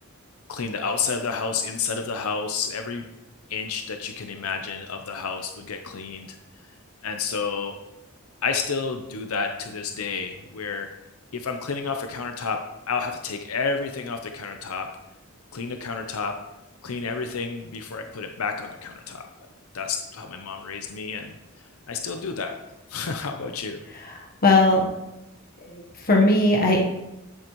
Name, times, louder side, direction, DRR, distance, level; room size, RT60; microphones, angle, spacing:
voice 1, 0.5-3.0 3.5-6.4 7.0-7.7 8.4-10.9 11.3-12.6 12.9-14.9 15.5-16.3 16.8-19.3 19.7-22.5 22.9-23.8, left 5 dB, 75° left, 5 dB, 0.7 m, -30 dB
voice 2, 24.1-24.8 25.7-26.8, left 2 dB, 40° left, 0 dB, 1.1 m, -19 dB
11.0 x 7.7 x 3.1 m, 0.93 s
head